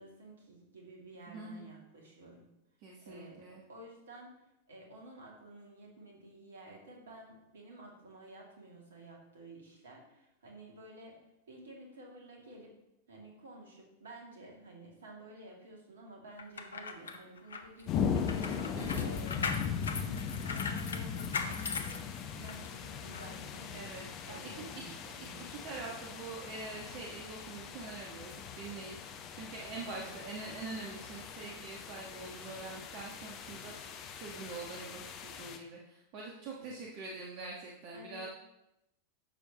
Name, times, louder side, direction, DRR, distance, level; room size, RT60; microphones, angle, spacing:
voice 1, 0.0-2.5 3.0-4.4 4.7-12.8 13.1-18.2 19.0-22.1 22.3-23.9 24.3-25.6 29.8-30.1 36.6-36.9 37.9-38.3, right 2 dB, 65° right, -1 dB, 2.3 m, -52 dB
voice 2, 1.3-1.7 2.8-3.6 18.7-19.1 23.7-29.0 29.3-38.3, right 3 dB, 45° right, -2 dB, 1.3 m, -45 dB
sound 1, 16.4-22.7 23.1-23.3, left 5 dB, 70° left, 0.7 m, -39 dB
sound 2, 17.9-35.6, left 7 dB, 35° left, 0.8 m, -39 dB
10.5 x 6.9 x 2.9 m, 0.87 s
figure-of-eight pair, 90°, 0 cm